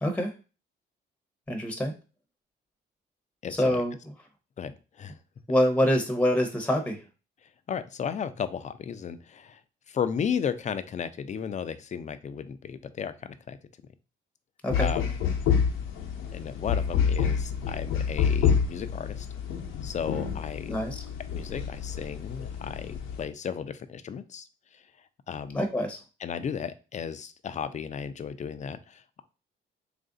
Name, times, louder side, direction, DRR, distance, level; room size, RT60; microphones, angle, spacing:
voice 1, 1.5-1.9 3.6-3.9 5.5-7.0 14.6-14.9 20.7-21.0 25.5-26.0, equal, 5° left, 5 dB, 0.7 m, -25 dB
voice 2, 3.4-3.8 4.6-5.2 7.7-9.6 9.9-13.6 14.8-15.0 16.3-19.3 19.8-20.8 21.3-24.8 25.3-25.6 26.2-29.2, left 7 dB, 35° left, 12 dB, 0.4 m, -34 dB
sound 1, 14.7-23.2, left 7 dB, 80° left, 0.7 m, -28 dB
3.1 x 2.5 x 3.7 m, 0.33 s
cardioid pair, 90°, 20 cm